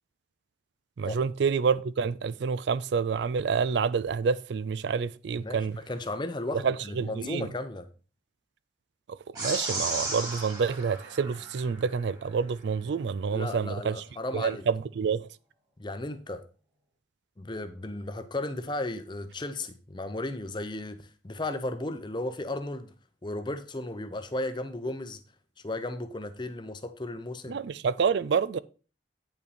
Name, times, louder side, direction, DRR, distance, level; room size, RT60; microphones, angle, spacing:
voice 1, 1.0-5.8 6.5-7.5 9.4-14.0 14.3-15.3 27.5-28.6, right 5 dB, 60° right, 0.4 m, -28 dB
voice 2, 5.4-7.9 13.3-14.6 15.8-16.4 17.4-22.9 23.2-25.2 25.6-27.6, left 2 dB, 25° left, 0.7 m, -35 dB
sound 1, 9.4-12.0, right 2 dB, 20° right, 2.3 m, -34 dB
8.8 x 5.6 x 4.1 m
head